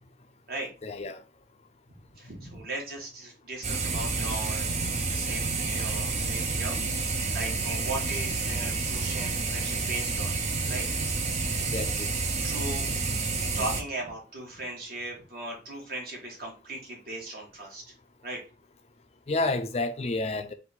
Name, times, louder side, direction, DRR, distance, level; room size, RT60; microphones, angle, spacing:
voice 1, 0.8-1.2 6.4-6.5 6.8-6.9 11.7-12.1 19.3-20.5, left 2 dB, 35° left, 0.5 m, -30 dB
voice 2, 2.1-4.7 5.0-10.4 10.6-10.9 12.4-12.9 13.5-17.8 18.2-18.4, right 2 dB, 55° right, 1.8 m, -37 dB
sound 1, 3.6-13.8, right 4 dB, 40° right, 0.6 m, -29 dB
4.0 x 2.6 x 4.2 m
head